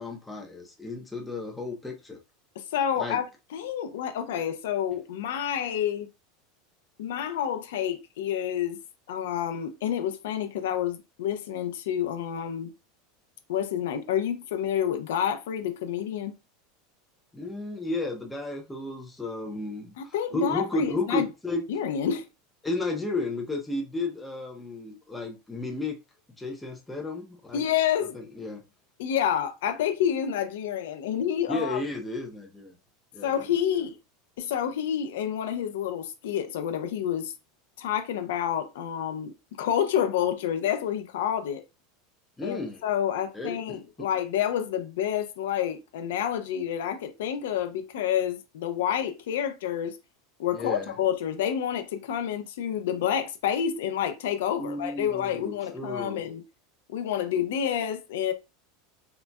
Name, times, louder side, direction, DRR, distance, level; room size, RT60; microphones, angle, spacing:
voice 1, 0.0-2.2 3.0-3.2 17.3-21.6 22.6-26.0 26.4-27.6 28.1-28.6 31.5-32.8 33.1-33.4 42.4-42.8 43.3-43.8 50.5-50.9 54.6-56.2, left 2 dB, 5° left, 0.5 m, -33 dB
voice 2, 2.6-3.2 3.5-6.1 7.0-8.8 9.1-12.7 13.5-16.3 20.0-21.3 21.7-22.3 27.5-28.2 29.0-31.8 33.2-34.0 34.4-37.3 37.8-41.6 42.4-50.0 50.4-56.4 56.9-58.3, left 9 dB, 90° left, 0.5 m, -29 dB
3.9 x 2.1 x 2.2 m
supercardioid pair, 160°, 0 cm